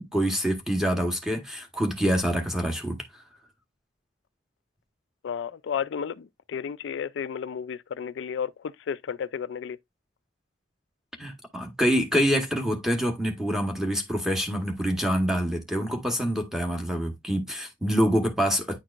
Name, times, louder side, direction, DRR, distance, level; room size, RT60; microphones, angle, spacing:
voice 1, 0.1-3.0 11.2-18.8, equal, 5° right, 1.1 m, -26 dB
voice 2, 5.2-9.8, left 7 dB, 70° left, 0.3 m, -32 dB
9.5 x 4.5 x 2.5 m
head